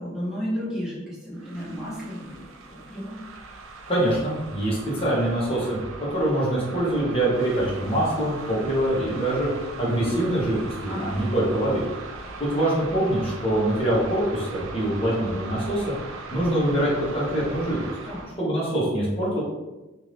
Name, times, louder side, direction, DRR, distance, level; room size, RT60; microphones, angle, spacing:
voice 1, 0.0-2.4 2.7-3.2 10.9-11.2 18.0-18.3, equal, ahead, -10 dB, 1.1 m, -33 dB
sound 1, 1.3-18.4, right 3 dB, 80° right, 0.4 m, -40 dB
voice 2, 3.9-9.5 9.8-11.8 12.4-15.9 16.3-17.8 18.4-19.4, right 1 dB, 30° left, -7 dB, 1.0 m, -24 dB
2.7 x 2.6 x 3.3 m, 1.1 s
head